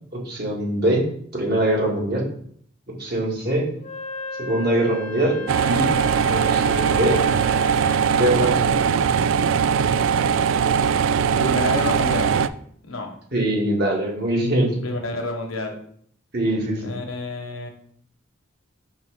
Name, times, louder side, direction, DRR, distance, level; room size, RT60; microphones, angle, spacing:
voice 1, 0.1-1.0 1.3-2.3 2.9-3.7 4.4-5.9 6.3-7.2 8.1-8.9 13.3-14.8 16.3-16.9, right 1 dB, 50° right, -2 dB, 1.8 m, -23 dB
Wind instrument woodwind instrument, 3.8-8.3, left 3 dB, 30° left, 0.3 m, -35 dB
sound 1, 5.5-12.5, right 7 dB, 75° right, 0.3 m, -20 dB
voice 2, 11.4-12.3 12.8-13.1 14.8-15.8 16.8-17.7, left 2 dB, 85° left, 2 dB, 1.2 m, -29 dB
5.5 x 3.8 x 5.2 m, 0.63 s
head